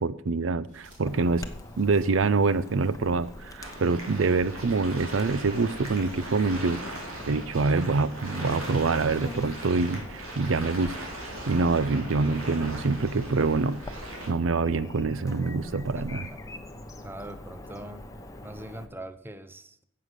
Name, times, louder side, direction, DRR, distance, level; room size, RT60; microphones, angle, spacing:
voice 1, 0.0-1.4 1.8-6.8 7.3-10.9 11.5-13.8 14.3-16.2, right 4 dB, 65° right, 16 dB, 0.5 m, -25 dB
sound 1, 0.7-14.3, equal, 40° right, 4.8 m, -52 dB
Chirp tweet / Buzz, 1.0-18.9, left 1 dB, 15° left, 0.9 m, -44 dB
sound 2, 3.6-14.3, right 1 dB, 85° right, 3.7 m, -40 dB
voice 2, 15.9-16.4 17.0-18.1 18.4-19.8, right 1 dB, 10° right, 11 dB, 0.7 m, -42 dB
10.0 x 7.6 x 8.1 m, 0.75 s
head